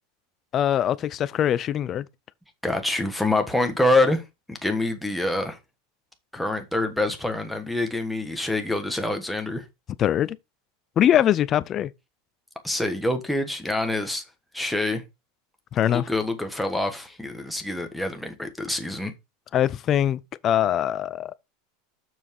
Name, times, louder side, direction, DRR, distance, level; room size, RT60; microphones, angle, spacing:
voice 1, 0.5-2.1 10.0-10.4 11.0-11.9 15.7-16.1 19.5-21.3, left 10 dB, 25° left, 0.4 m, -22 dB
voice 2, 2.6-4.2 4.5-5.6 6.3-9.6 12.6-14.2 14.5-15.0 15.9-19.1, left 2 dB, ahead, 1.2 m, -26 dB
7.1 x 6.2 x 4.6 m
supercardioid pair, 175°, 0 cm